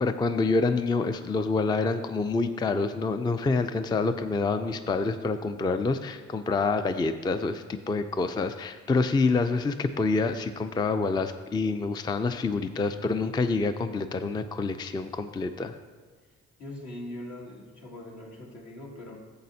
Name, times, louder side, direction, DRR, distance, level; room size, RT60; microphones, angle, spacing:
voice 1, 0.0-15.8, left 3 dB, 15° left, 9 dB, 0.3 m, -27 dB
voice 2, 16.6-19.2, left 1 dB, 70° left, -2 dB, 2.2 m, -41 dB
12.0 x 7.6 x 2.7 m, 1.4 s
cardioid pair, 90°, 30 cm